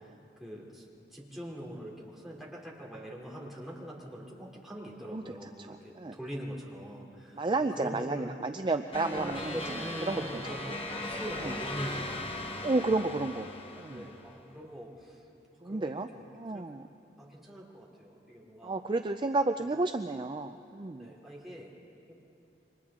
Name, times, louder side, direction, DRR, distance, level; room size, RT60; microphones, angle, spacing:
voice 1, 0.4-0.8 1.1-7.4 7.8-8.4 9.0-12.6 13.9-15.2 15.6-16.2 16.5-16.7 17.2-18.8 21.0-21.7 22.1-22.2, equal, ahead, -4 dB, 3.0 m, -43 dB
voice 2, 5.7-6.2 7.3-10.7 11.4-11.5 12.6-13.5 13.8-14.1 15.6-16.1 16.3-16.9 18.6-21.1, right 2 dB, 25° right, 7 dB, 0.4 m, -32 dB
sound 1, 8.9-14.4, left 2 dB, 30° left, 1.4 m, -38 dB
29.0 x 25.0 x 3.7 m, 2.8 s
head